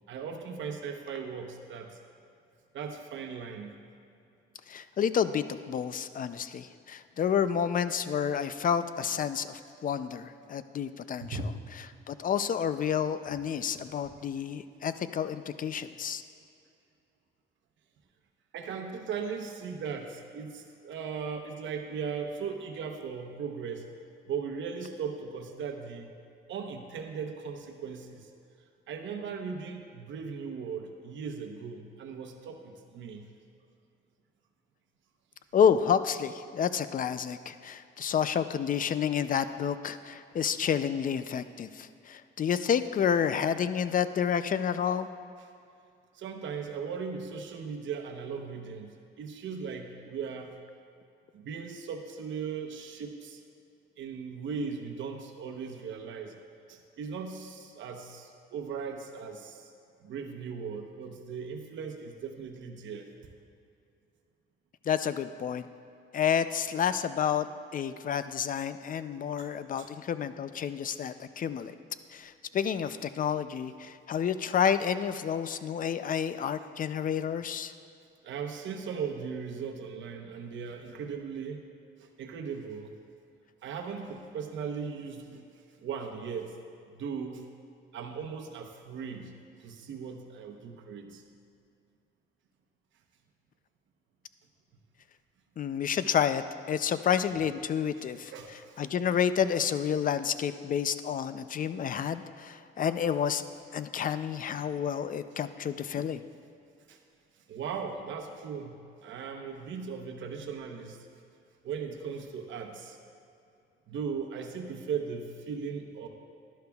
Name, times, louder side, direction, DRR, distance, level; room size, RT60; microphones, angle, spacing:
voice 1, 0.1-2.0 2.7-3.7 11.2-11.6 14.1-14.2 18.5-23.8 24.3-26.1 26.5-28.3 28.9-33.2 46.1-50.5 51.3-53.4 54.0-56.3 56.7-59.7 60.0-63.1 69.4-69.5 69.8-69.9 78.2-81.6 82.0-82.9 83.6-85.4 85.8-86.5 86.9-87.4 87.9-89.3 89.6-91.2 98.3-98.9 106.9-107.0 107.5-111.1 111.6-113.0 113.9-116.1, right 6 dB, 70° right, 4 dB, 1.0 m, -38 dB
voice 2, 4.7-11.4 12.1-16.2 35.5-45.1 64.9-65.6 66.1-67.5 67.7-71.7 72.1-77.7 95.6-96.4 96.7-98.3 98.8-103.4 103.7-106.2, left 8 dB, 45° left, 12 dB, 0.5 m, -29 dB
12.0 x 11.5 x 2.3 m, 2.5 s
cardioid pair, 90°, 20 cm